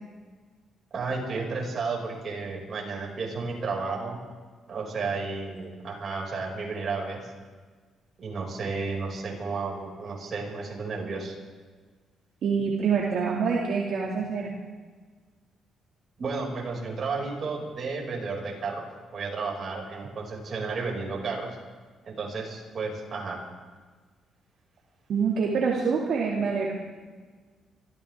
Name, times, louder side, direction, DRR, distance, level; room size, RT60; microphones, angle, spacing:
voice 1, 0.9-4.2 4.7-7.3 8.2-11.3 16.2-18.8 19.1-21.6 22.0-23.4, right 4 dB, 50° right, -1 dB, 6.2 m, -32 dB
voice 2, 12.4-14.5 25.1-26.7, right 5 dB, 70° right, -3 dB, 2.4 m, -26 dB
24.5 x 15.0 x 3.7 m, 1.5 s
cardioid pair, 90°, 0 cm